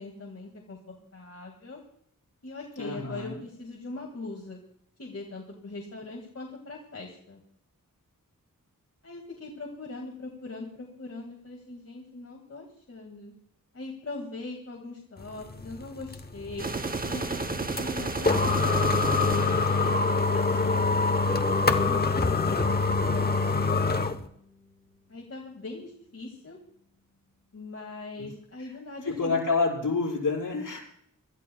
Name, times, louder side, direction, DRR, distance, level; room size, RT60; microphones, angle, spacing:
voice 1, 0.0-1.8 2.4-4.6 5.0-7.4 9.0-13.3 13.7-16.7 17.1-20.8 21.6-23.7 25.1-26.6 27.5-29.5, left 2 dB, 45° left, -1 dB, 2.0 m, -41 dB
voice 2, 2.8-3.4 28.2-28.3 28.6-28.7 29.0-30.8, left 4 dB, 65° left, -4 dB, 5.4 m, -28 dB
sound 1, 15.2-24.2, left 3 dB, 30° left, 0.9 m, -25 dB
sound 2, 16.6-20.7, right 3 dB, 25° right, 0.8 m, -33 dB
sound 3, 21.3-24.5, left 3 dB, 5° right, 7.6 m, -38 dB
25.5 x 13.5 x 2.3 m, 0.67 s
wide cardioid pair, 105°, 33 cm